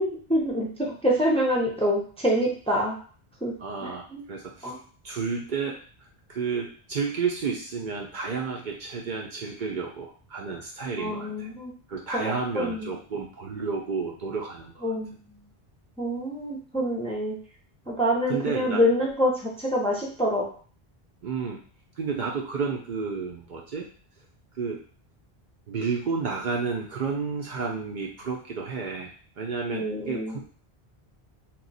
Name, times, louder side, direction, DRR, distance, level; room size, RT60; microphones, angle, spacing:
voice 1, 0.0-3.0 3.4-3.5 3.8-4.2 4.6-4.8 11.0-11.7 12.1-12.9 14.8-15.1 16.0-17.4 17.9-20.4 29.7-30.4, equal, 5° left, -2 dB, 0.5 m, -26 dB
voice 2, 3.6-4.7 5.0-5.8 6.3-11.5 11.9-14.9 18.3-18.8 21.2-21.6 22.0-23.9 24.6-24.8 25.7-30.4, right 5 dB, 60° right, 0 dB, 0.6 m, -31 dB
3.0 x 2.3 x 3.9 m, 0.43 s
omnidirectional pair, 1.0 m